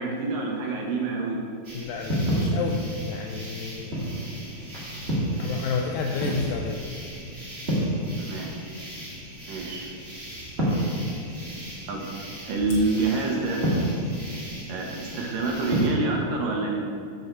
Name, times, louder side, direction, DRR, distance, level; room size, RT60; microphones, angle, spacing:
voice 1, 0.0-1.4 8.2-8.5 9.5-9.9 11.9-12.1 12.5-13.6 14.7-16.8, right 3 dB, 65° right, -1 dB, 2.5 m, -27 dB
sound 1, 1.6-15.9, equal, 20° right, 1.8 m, -31 dB
voice 2, 1.7-4.0 5.4-6.8, left 5 dB, 80° left, 2 dB, 2.1 m, -31 dB
Fire, 12.7-13.8, left 2 dB, 45° left, 1.6 m, -49 dB
13.5 x 5.5 x 4.7 m, 2.3 s
omnidirectional pair, 4.6 m